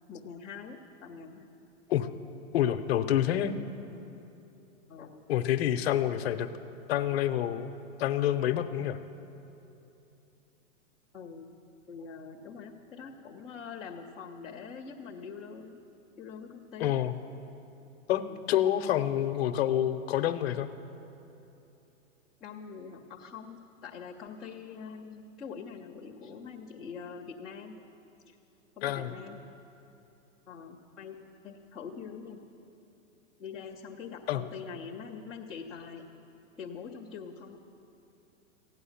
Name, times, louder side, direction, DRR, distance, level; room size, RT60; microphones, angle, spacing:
voice 1, 0.1-1.5 3.5-3.6 4.9-5.3 11.1-11.5 11.9-15.8 16.2-16.9 18.3-18.5 22.4-27.8 28.3-28.4 28.8-29.4 30.5-31.2 31.4-32.4 33.4-36.0 36.6-37.6, left 6 dB, ahead, -13 dB, 0.4 m, -44 dB
voice 2, 2.5-3.5 5.3-6.5 6.9-7.7 8.0-9.0 16.8-17.1 18.1-20.7 28.8-29.1 34.3-34.4, left 11 dB, 50° left, 10 dB, 0.7 m, -27 dB
15.0 x 9.7 x 7.1 m, 2.9 s
hypercardioid pair, 150°, 39 cm